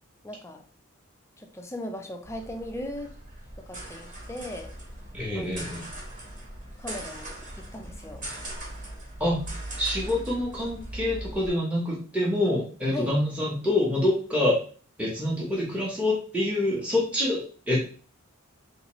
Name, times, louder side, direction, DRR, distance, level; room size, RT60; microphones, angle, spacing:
voice 1, 0.2-0.7 1.4-3.1 3.6-4.7 5.3-5.6 6.8-8.3 12.9-13.2, left 1 dB, 15° left, 4 dB, 0.4 m, -38 dB
sound 1, 2.2-11.5, right 1 dB, 40° right, 1.1 m, -40 dB
voice 2, 5.1-5.9 9.2-9.4 9.8-14.6 15.0-17.8, left 1 dB, 5° right, -5 dB, 0.8 m, -26 dB
3.5 x 2.8 x 3.0 m, 0.40 s
head